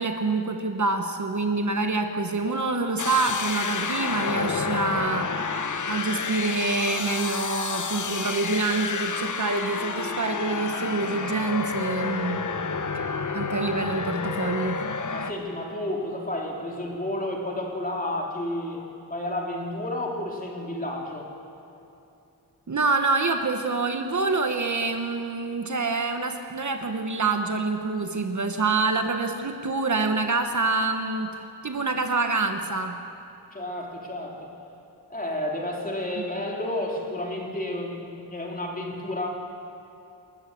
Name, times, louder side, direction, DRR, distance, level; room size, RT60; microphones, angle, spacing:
voice 1, 0.0-5.3 5.9-12.4 13.3-14.8 22.7-31.3 31.6-33.0 36.2-36.3, right 3 dB, 45° right, 6 dB, 1.1 m, -26 dB
sound 1, 3.0-15.3, left 5 dB, 50° left, 1.0 m, -30 dB
voice 2, 15.1-18.8 19.1-21.3 33.5-34.5 35.1-39.3, left 1 dB, 20° left, -1 dB, 3.2 m, -31 dB
28.5 x 14.0 x 7.4 m, 2.7 s
wide cardioid pair, 135°, 40 cm